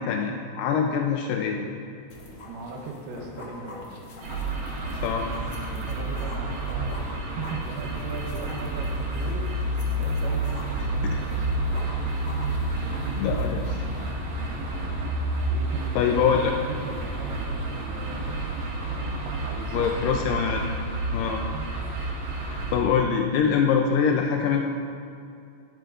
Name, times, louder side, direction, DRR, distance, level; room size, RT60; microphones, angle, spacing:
voice 1, 0.0-1.8 4.9-5.3 11.0-11.2 12.7-13.9 16.0-16.5 19.7-20.6 21.1-21.4 22.4-24.7, left 7 dB, 85° left, 2 dB, 1.9 m, -24 dB
sound 1, 2.1-13.7, left 2 dB, 65° left, 1.3 m, -44 dB
voice 2, 2.5-3.9 5.7-9.5 9.9-11.5 15.4-18.5 18.9-20.1 21.2-21.7, right 4 dB, 80° right, 1 dB, 2.7 m, -39 dB
sound 2, 4.2-22.8, right 2 dB, 60° right, 2.2 m, -29 dB
19.5 x 7.8 x 2.5 m, 2.4 s
omnidirectional pair, 4.5 m